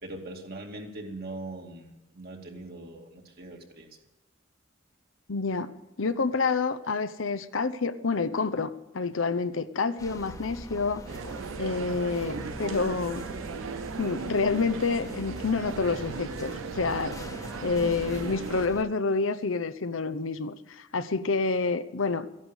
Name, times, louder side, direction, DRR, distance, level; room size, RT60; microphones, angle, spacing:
voice 1, 0.0-3.9, right 2 dB, 55° right, 1 dB, 2.7 m, -41 dB
voice 2, 5.3-5.7 6.0-11.1 11.6-13.3 14.0-17.1 17.6-22.3, left 4 dB, 80° left, 11 dB, 0.8 m, -28 dB
sound 1, 10.0-18.8, left 1 dB, 20° left, 1.2 m, -42 dB
sound 2, 11.1-18.7, right 6 dB, 80° right, 0.5 m, -37 dB
14.5 x 11.0 x 8.3 m, 0.99 s
head